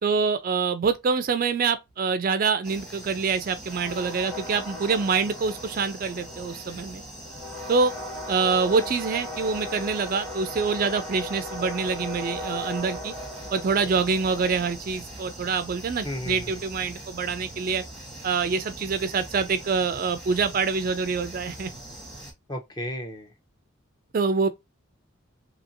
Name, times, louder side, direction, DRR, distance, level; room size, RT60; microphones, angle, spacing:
voice 1, 0.0-7.0 7.7-7.9 8.3-13.1 13.5-17.8 18.2-21.7 24.1-24.5, right 5 dB, 40° right, 0.3 m, -25 dB
sound 1, 2.6-22.3, left 1 dB, 5° left, 1.0 m, -38 dB
voice 2, 16.0-16.5 22.5-23.3, left 1 dB, 20° left, 0.6 m, -33 dB
2.8 x 2.6 x 2.6 m
head